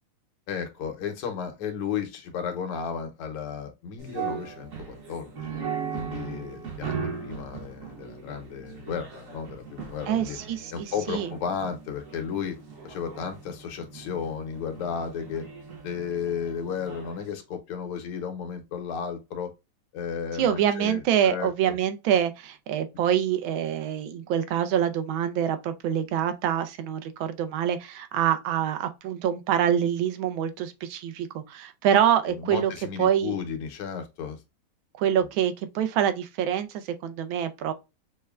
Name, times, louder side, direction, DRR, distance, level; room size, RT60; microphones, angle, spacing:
voice 1, 0.5-5.6 5.9-10.4 10.7-12.6 12.8-15.5 15.8-19.5 19.9-21.7 32.3-34.4, left 7 dB, 85° left, 1.8 m, -34 dB
sound 1, 4.0-17.3, right 6 dB, 50° right, 1.0 m, -38 dB
voice 2, 10.1-11.3 20.4-32.7 33.0-33.4 35.0-37.7, right 9 dB, 75° right, 1.3 m, -25 dB
6.4 x 2.1 x 2.2 m
omnidirectional pair, 2.4 m